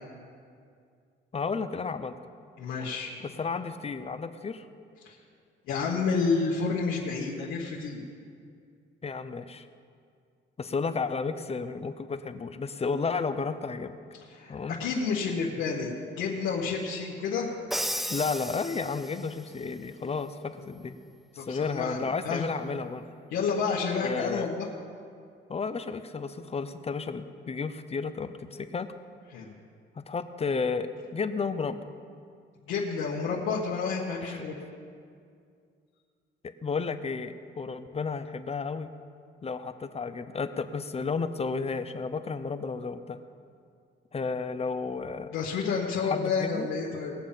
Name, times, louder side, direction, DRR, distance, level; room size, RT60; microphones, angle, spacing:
voice 1, 1.3-2.2 3.2-4.7 9.0-9.7 10.6-13.9 14.5-14.8 18.1-21.0 21.3-23.1 24.0-24.5 25.5-28.9 30.0-31.8 34.3-34.4 36.4-38.9 39.4-43.2 44.1-45.3 46.1-46.7, left 4 dB, 30° left, 10 dB, 0.7 m, -32 dB
voice 2, 2.6-3.1 5.0-5.2 5.7-8.0 14.3-17.5 21.4-22.4 23.3-24.7 29.3-29.5 32.6-34.6 45.3-47.1, left 5 dB, 90° left, -6 dB, 1.6 m, -30 dB
Crash cymbal, 17.7-19.4, equal, ahead, 0.4 m, -34 dB
20.0 x 7.2 x 5.7 m, 2.3 s
cardioid pair, 90°, 20 cm